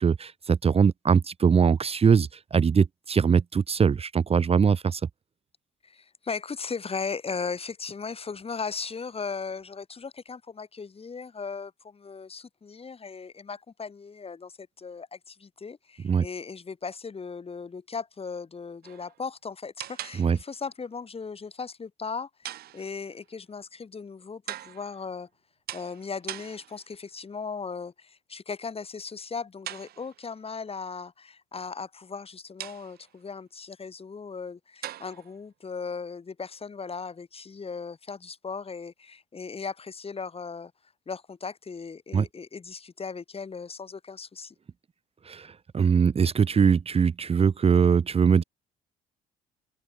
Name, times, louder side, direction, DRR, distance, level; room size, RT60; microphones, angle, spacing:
voice 1, 0.0-5.0 16.0-16.2 20.2-20.4 42.1-42.3 45.3-48.4, right 6 dB, 35° right, 1.3 m, -22 dB
voice 2, 5.8-25.3 25.7-40.7 41.1-44.6, left 5 dB, 35° left, 7.0 m, -37 dB
sound 1, 18.8-19.2 19.8-20.7 22.4-23.2 24.5-25.1 25.7-27.0 29.7-30.4 32.6-33.2 34.8-35.4, right 13 dB, 65° right, 3.6 m, -41 dB
hypercardioid pair, 55°, 17 cm